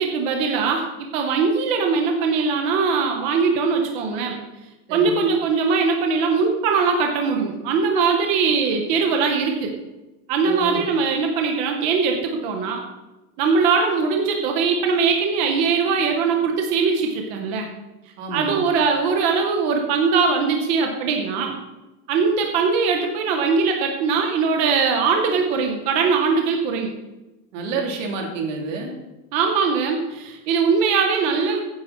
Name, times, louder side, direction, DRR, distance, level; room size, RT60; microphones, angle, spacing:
voice 1, 0.0-4.4 4.9-9.7 10.3-12.8 13.4-17.7 18.3-21.5 22.1-26.9 29.3-31.6, right 5 dB, 15° right, 3 dB, 0.4 m, -21 dB
voice 2, 4.9-5.2 10.4-10.8 18.2-18.6 27.5-28.9, right 3 dB, 55° right, 1 dB, 2.9 m, -29 dB
15.0 x 9.4 x 4.1 m, 1.0 s
supercardioid pair, 170°, 47 cm